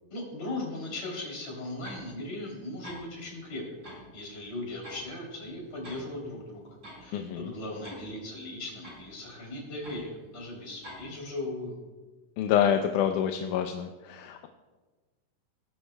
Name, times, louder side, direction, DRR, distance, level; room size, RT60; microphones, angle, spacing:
voice 1, 0.1-3.6 4.1-6.7 7.0-11.8, left 2 dB, 50° left, -2 dB, 4.1 m, -38 dB
sound 1, 1.8-2.1 2.5-2.6 2.8-3.0 3.8-4.1 4.4-5.1 5.4-6.0 6.4-6.5 6.8-7.0 7.8-8.1 8.8-9.1 9.8-10.0 10.8-11.0, equal, 30° right, 4.8 m, -45 dB
voice 2, 7.1-7.5 12.4-14.5, left 9 dB, 80° left, 5 dB, 2.0 m, -27 dB
20.0 x 11.5 x 2.2 m, 1.3 s
omnidirectional pair, 3.8 m